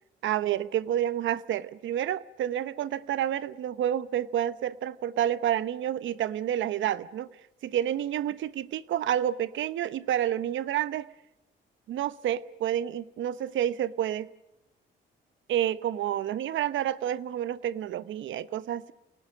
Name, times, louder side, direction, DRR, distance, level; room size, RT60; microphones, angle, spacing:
voice 1, 0.2-7.3 7.7-11.1 11.9-14.3 15.5-18.9, right 11 dB, 75° right, 0.9 m, -29 dB
28.5 x 18.5 x 6.3 m
cardioid pair, 90°, 20 cm